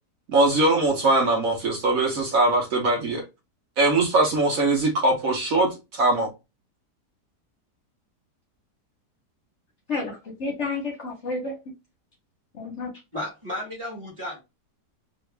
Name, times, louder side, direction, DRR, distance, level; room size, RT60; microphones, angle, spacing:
voice 1, 0.3-3.2 3.8-6.3, right 2 dB, 60° right, 1.1 m, -21 dB
voice 2, 9.9-11.6 12.5-12.9, left 3 dB, 55° left, 0.9 m, -30 dB
voice 3, 13.1-14.4, left 1 dB, 20° right, 1.1 m, -33 dB
2.8 x 2.5 x 3.2 m
omnidirectional pair, 1.8 m